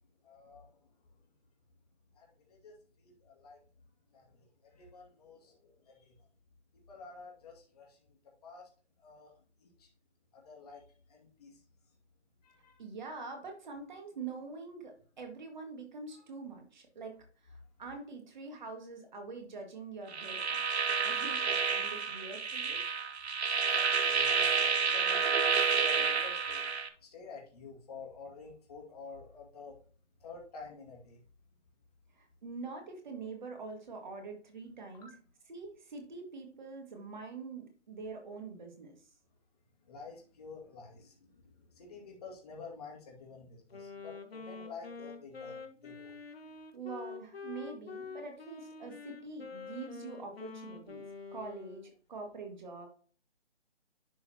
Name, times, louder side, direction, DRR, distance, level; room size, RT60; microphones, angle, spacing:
voice 1, 0.2-0.7 2.2-3.6 4.1-6.2 6.9-8.2 8.4-8.7 9.0-9.3 9.6-9.9 10.3-10.8 11.1-11.6 12.4-12.8 16.1-16.2 23.7-26.6 27.0-29.8 30.2-31.2 34.9-35.1 39.8-46.1, left 4 dB, 35° left, -1 dB, 2.2 m, -50 dB
voice 2, 12.8-14.9 15.2-17.1 17.8-20.6 21.0-22.8 32.2-35.1 35.5-39.0 46.7-52.9, right 4 dB, 40° right, 3 dB, 1.9 m, -44 dB
sound 1, 20.1-26.9, right 5 dB, 65° right, 1.0 m, -30 dB
Wind instrument woodwind instrument, 43.7-51.9, left 5 dB, 55° left, 1.3 m, -46 dB
11.0 x 4.0 x 2.8 m, 0.42 s
figure-of-eight pair, 155°, 35 cm